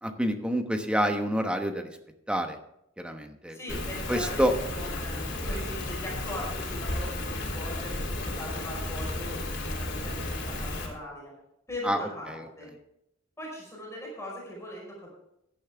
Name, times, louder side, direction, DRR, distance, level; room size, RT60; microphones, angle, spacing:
voice 1, 0.0-1.9 2.3-2.6 3.0-3.8 4.1-4.5 11.8-12.0 12.3-12.5, equal, 5° right, 5 dB, 1.1 m, -28 dB
voice 2, 3.5-4.4 4.7-11.3 11.7-12.7 13.4-15.1, left 1 dB, 15° left, -3 dB, 4.9 m, -40 dB
Rain, 3.7-10.9, left 2 dB, 60° left, 3.5 m, -33 dB
15.5 x 10.5 x 3.5 m, 0.81 s
head